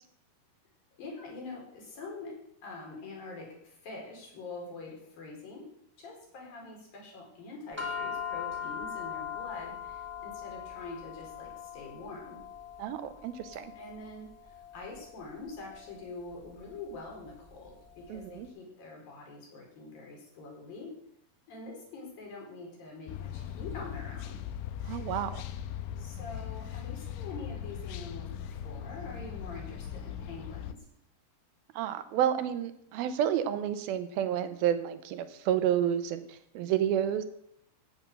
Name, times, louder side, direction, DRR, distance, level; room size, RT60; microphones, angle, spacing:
voice 1, 1.0-2.4 2.6-5.7 6.0-12.4 13.8-20.9 21.5-24.4 26.0-30.9, left 3 dB, 60° left, -1 dB, 6.0 m, -45 dB
sound 1, 7.8-18.2, left 7 dB, 5° right, 1.5 m, -41 dB
voice 2, 12.8-13.7 18.1-18.5 24.9-25.4 31.8-37.2, right 10 dB, 75° right, 11 dB, 2.6 m, -30 dB
sound 2, 23.1-30.7, left 9 dB, 85° left, 1.8 m, -39 dB
16.0 x 9.0 x 6.6 m, 0.73 s
omnidirectional pair, 4.7 m